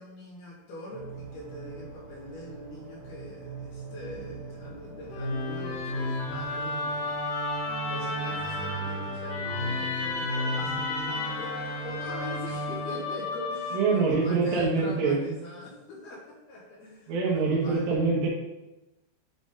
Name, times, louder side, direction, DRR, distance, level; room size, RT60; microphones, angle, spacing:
voice 1, 0.0-7.3 7.8-17.8, left 1 dB, 85° left, -5 dB, 3.8 m, -42 dB
sound 1, 0.9-7.2, right 5 dB, 90° right, 2.6 m, -44 dB
Musical instrument, 5.1-14.3, left 2 dB, 65° left, 3.0 m, -32 dB
voice 2, 13.7-15.3 17.1-18.3, right 4 dB, 70° right, -3 dB, 2.8 m, -25 dB
8.7 x 3.9 x 3.7 m, 0.99 s
omnidirectional pair, 4.4 m